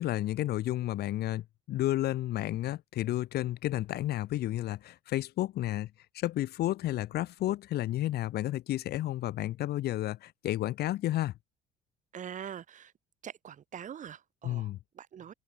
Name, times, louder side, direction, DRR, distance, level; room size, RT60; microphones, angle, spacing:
voice 1, 0.0-11.3 14.4-14.8, left 14 dB, 70° left, 3.5 m, -32 dB
voice 2, 12.1-12.9 13.2-15.3, right 9 dB, 50° right, 3.8 m, -44 dB
cardioid pair, 110°, 17 cm